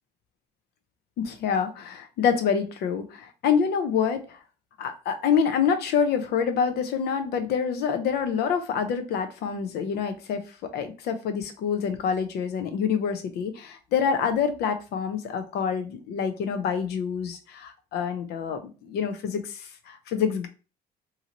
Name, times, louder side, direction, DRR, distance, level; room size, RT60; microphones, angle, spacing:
voice 1, 1.2-4.4 4.8-20.5, left 7 dB, 75° left, 8 dB, 0.7 m, -27 dB
2.8 x 2.5 x 2.9 m, 0.34 s
cardioid pair, 110°, 17 cm